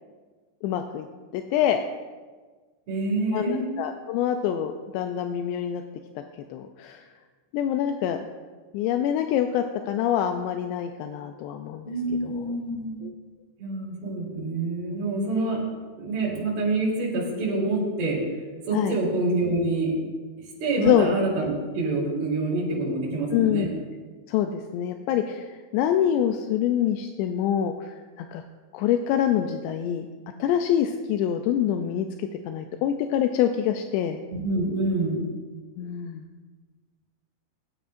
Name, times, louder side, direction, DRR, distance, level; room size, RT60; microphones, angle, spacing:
voice 1, 0.6-1.1 1.3-1.8 3.3-5.8 6.2-6.3 6.5-7.1 7.5-8.2 8.7-11.9 12.2-12.5 13.0-13.1 18.7-19.0 20.8-21.1 23.3-23.7 24.3-28.4 28.7-30.1 30.4-34.2 35.8-36.3, left 10 dB, 85° left, 6 dB, 2.5 m, -25 dB
voice 2, 2.9-3.7 11.8-13.1 13.6-15.6 16.0-18.2 18.7-20.0 20.6-23.7 34.3-35.3, right 2 dB, 55° right, -6 dB, 5.3 m, -26 dB
21.0 x 9.3 x 2.6 m, 1.4 s
omnidirectional pair, 5.4 m